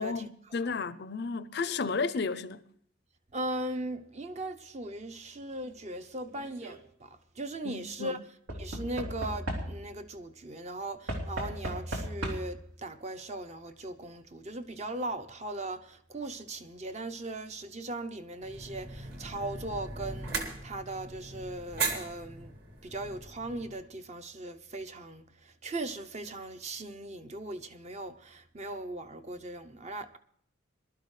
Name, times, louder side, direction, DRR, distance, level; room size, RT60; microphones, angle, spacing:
voice 1, 0.0-2.6 7.6-8.2, left 4 dB, 50° left, 0.5 m, -33 dB
voice 2, 3.3-8.2 8.6-22.5 22.8-30.2, right 2 dB, 35° right, 0.7 m, -39 dB
Knock / Wood, 6.3-6.8 8.5-10.0 11.1-12.7 13.7-13.8 14.0-14.1, equal, 85° right, 3.0 m, -36 dB
sound 1, 18.4-23.8, right 4 dB, 50° right, 2.2 m, -38 dB
21.5 x 12.0 x 3.2 m
head